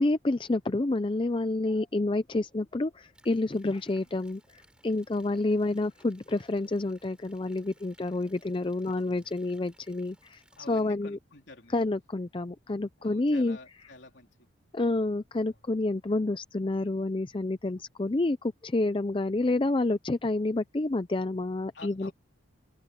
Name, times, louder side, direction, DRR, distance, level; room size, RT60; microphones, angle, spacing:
voice 1, 0.0-11.2 11.7-13.6 14.7-22.1, left 2 dB, 25° left, 0.5 m, -29 dB
sound 1, 3.1-10.8, right 1 dB, 5° right, 3.3 m, -63 dB
voice 2, 8.9-9.4 10.6-11.8 13.0-14.5 14.8-15.0 21.7-22.1, left 3 dB, 60° left, 3.7 m, -50 dB
head